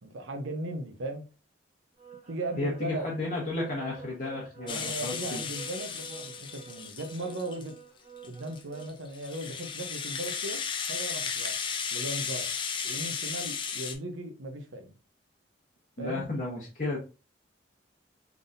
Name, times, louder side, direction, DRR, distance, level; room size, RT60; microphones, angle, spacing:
voice 1, 0.0-1.3 2.3-3.1 4.6-7.8 8.2-10.6 10.9-11.6 11.9-12.5 12.8-14.9 16.0-16.3, right 1 dB, 85° right, 0.8 m, -37 dB
sound 1, 2.0-8.9, right 8 dB, 30° right, 1.2 m, -49 dB
voice 2, 2.6-5.4 16.0-17.0, left 2 dB, 40° left, 1.0 m, -33 dB
Rattle (instrument), 4.7-7.7 8.2-13.9, left 6 dB, 25° left, 0.5 m, -35 dB
3.9 x 3.6 x 2.6 m
head